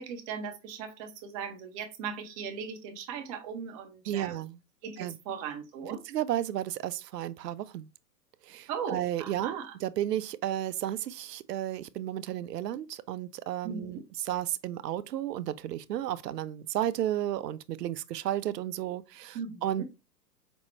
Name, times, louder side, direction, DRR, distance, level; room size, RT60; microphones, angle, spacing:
voice 1, 0.0-4.4 4.8-6.0 8.7-9.8 13.6-14.0 19.3-19.8, right 6 dB, 20° right, 0.5 m, -38 dB
voice 2, 4.1-4.6 5.0-5.2 6.1-7.9 8.5-19.8, right 12 dB, 75° right, 0.5 m, -33 dB
5.1 x 2.1 x 3.1 m
hypercardioid pair, 120°, 50 cm